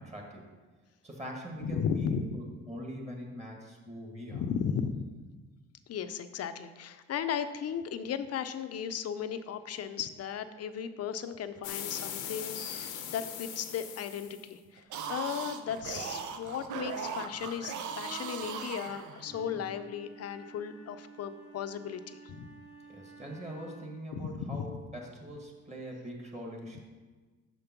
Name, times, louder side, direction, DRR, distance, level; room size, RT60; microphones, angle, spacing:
voice 1, 0.1-0.5 1.0-4.4 19.4-19.6 22.9-26.8, equal, 20° right, 0 dB, 1.7 m, -42 dB
voice 2, 1.6-2.4 4.3-5.1 5.9-22.5 24.1-24.8, left 7 dB, 55° left, 10 dB, 0.6 m, -36 dB
sound 1, 11.6-14.5, left 9 dB, 90° left, 0.8 m, -40 dB
sound 2, 14.8-19.5, right 6 dB, 75° right, 0.7 m, -39 dB
Wind instrument woodwind instrument, 19.2-24.0, right 4 dB, 50° right, 1.5 m, -52 dB
6.5 x 5.3 x 5.9 m, 1.3 s
cardioid pair, 90°, 30 cm